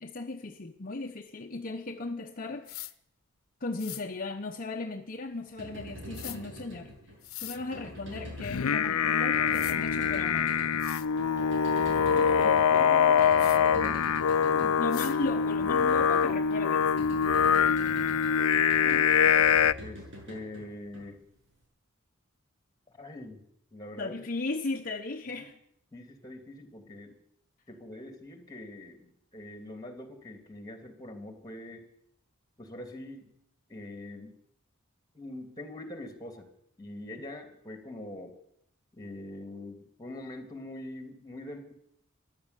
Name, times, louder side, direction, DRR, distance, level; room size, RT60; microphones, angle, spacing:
voice 1, 0.0-2.8 3.6-6.9 7.4-10.6 13.2-13.4 14.8-16.9 24.0-25.5, left 3 dB, 40° left, 4 dB, 0.8 m, -36 dB
sound 1, 2.6-2.9 3.8-4.0 6.1-6.4 7.2-7.6 9.1-9.2 9.5-9.8 10.4-10.5 10.8-11.1 13.4-13.6 14.9-15.2, left 17 dB, 70° left, 0.9 m, -41 dB
sound 2, 5.4-21.5, equal, 60° right, 7.4 m, -45 dB
Singing, 8.4-19.7, left 7 dB, 90° left, 0.5 m, -24 dB
voice 2, 12.1-14.1 14.4-14.8 18.8-19.1 19.8-21.2 22.9-23.4 23.7-24.2 25.9-27.1 27.7-31.9 32.6-33.3 33.7-34.4 35.1-36.5 36.8-38.3 38.9-41.7, left 1 dB, 20° left, 6 dB, 2.6 m, -43 dB
14.5 x 11.5 x 8.1 m, 0.73 s
head